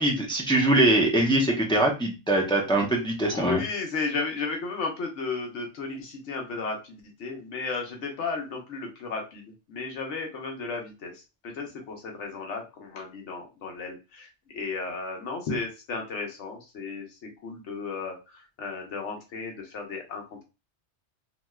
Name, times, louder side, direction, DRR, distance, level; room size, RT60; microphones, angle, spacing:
voice 1, 0.0-3.6, right 1 dB, 5° left, 0 dB, 0.4 m, -22 dB
voice 2, 3.2-9.4 9.7-20.4, left 4 dB, 80° left, 2 dB, 1.1 m, -34 dB
3.1 x 2.8 x 2.2 m, 0.28 s
omnidirectional pair, 1.2 m